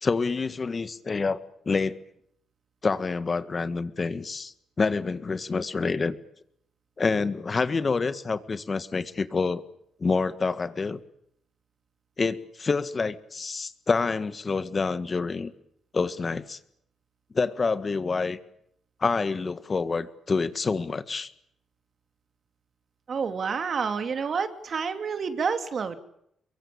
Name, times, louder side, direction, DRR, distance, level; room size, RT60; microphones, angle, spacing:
voice 1, 0.0-2.0 2.8-6.2 7.0-9.6 10.0-11.0 12.2-15.5 15.9-16.6 17.3-18.4 19.0-21.3, left 4 dB, 40° left, 13 dB, 1.8 m, -27 dB
voice 2, 23.1-26.0, right 5 dB, 55° right, 8 dB, 2.9 m, -29 dB
23.5 x 23.0 x 8.7 m, 0.73 s
cardioid pair, 65°, 0 cm